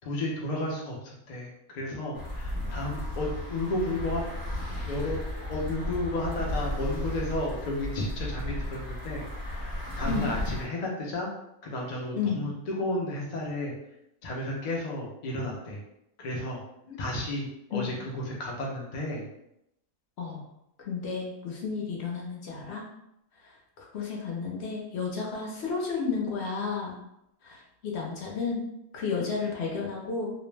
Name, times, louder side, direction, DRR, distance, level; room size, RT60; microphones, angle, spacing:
voice 1, 0.0-4.2 4.8-5.2 5.5-9.2 9.5-9.7 10.0-11.3 11.6-13.7 14.2-15.8 16.2-16.6 17.0-19.3, left 1 dB, 75° left, -2 dB, 0.4 m, -32 dB
sound 1, 2.1-10.7, left 1 dB, 20° left, 0.8 m, -34 dB
voice 2, 20.8-22.8 23.8-26.9 27.4-28.6 28.9-30.3, left 5 dB, 60° left, -2 dB, 0.7 m, -32 dB
2.5 x 2.1 x 3.1 m, 0.82 s
omnidirectional pair, 1.5 m